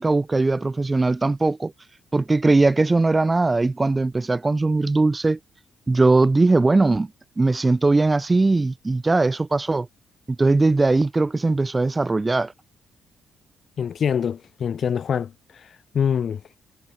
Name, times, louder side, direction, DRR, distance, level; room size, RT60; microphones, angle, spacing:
voice 1, 0.0-1.7 2.1-5.4 5.9-7.1 7.4-9.9 10.4-12.5, right 3 dB, 20° right, 1.3 m, -20 dB
voice 2, 13.8-15.3 15.9-16.4, left 7 dB, 55° left, 6.7 m, -24 dB
cardioid pair, 90°, 0 cm